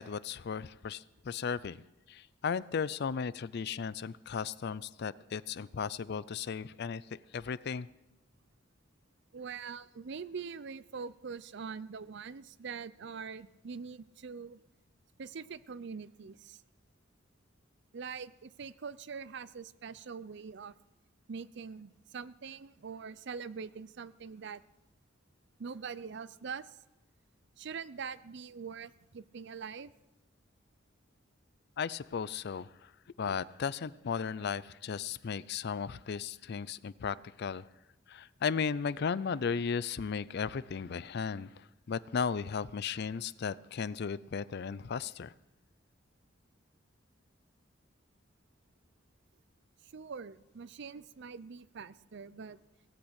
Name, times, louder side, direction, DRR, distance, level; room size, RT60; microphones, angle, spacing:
voice 1, 0.0-1.8 2.1-7.0 7.3-7.9 31.8-32.9 33.2-37.6 38.1-41.5 41.9-45.3, left 6 dB, 55° left, 19 dB, 0.4 m, -35 dB
voice 2, 9.3-14.6 15.2-16.6 17.9-20.7 21.3-24.6 25.6-26.8 27.6-29.9 49.8-52.6, right 5 dB, 60° right, 17 dB, 0.5 m, -43 dB
17.5 x 8.8 x 8.1 m, 0.96 s
head